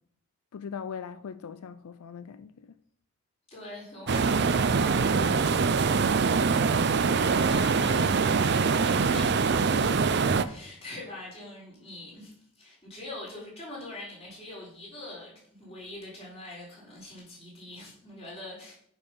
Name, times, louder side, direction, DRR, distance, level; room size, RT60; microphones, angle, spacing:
voice 1, 0.5-2.7, left 6 dB, 85° left, 0.4 m, -40 dB
voice 2, 3.5-6.6 6.9-18.7, left 1 dB, 25° left, 3.9 m, -43 dB
sound 1, 4.1-10.4, right 5 dB, 50° right, 0.5 m, -24 dB
9.2 x 5.4 x 5.5 m
head